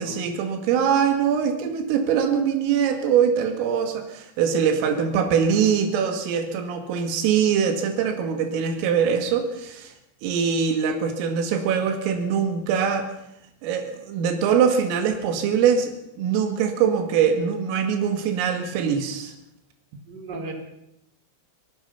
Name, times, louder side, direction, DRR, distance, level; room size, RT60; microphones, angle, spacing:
voice 1, 0.0-9.9 10.2-13.1 13.6-19.3, right 7 dB, 85° right, 6 dB, 4.7 m, -23 dB
voice 2, 4.8-5.7 20.1-20.5, right 3 dB, 25° right, 3 dB, 3.7 m, -38 dB
26.0 x 18.0 x 5.7 m, 0.83 s
omnidirectional pair, 5.8 m